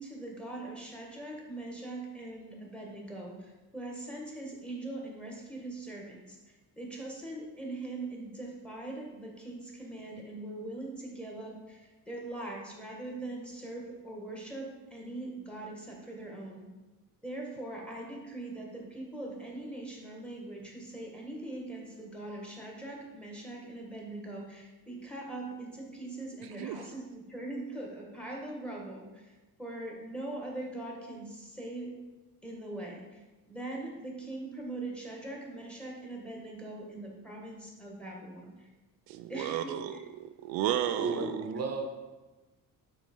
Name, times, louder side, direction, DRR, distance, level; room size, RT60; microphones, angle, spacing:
voice 1, 0.0-6.4 6.8-11.8 12.1-16.6 17.2-29.2 29.6-31.9 32.4-33.0 33.5-38.5 39.3-39.7 41.2-41.3, right 2 dB, 5° left, -1 dB, 1.4 m, -41 dB
voice 2, 39.1-41.4, right 11 dB, 90° right, 9 dB, 0.5 m, -33 dB
voice 3, 40.9-41.9, right 4 dB, 45° right, 4 dB, 0.9 m, -33 dB
5.6 x 4.5 x 4.4 m, 1.2 s
cardioid pair, 105°, 35 cm